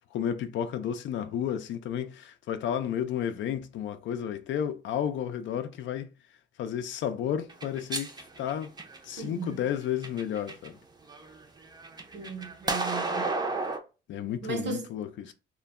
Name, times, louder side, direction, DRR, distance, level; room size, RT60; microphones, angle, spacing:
voice 1, 0.1-6.1 6.6-8.7 9.0-10.8 14.1-15.3, left 9 dB, 70° left, 0.4 m, -32 dB
sound 1, 7.5-9.2 9.8-10.7 11.1-13.8, right 3 dB, 20° right, 0.5 m, -33 dB
voice 2, 9.2-9.6 12.1-13.3 14.4-14.9, right 5 dB, 65° right, 0.9 m, -36 dB
2.2 x 2.1 x 3.4 m
cardioid pair, 90°, 20 cm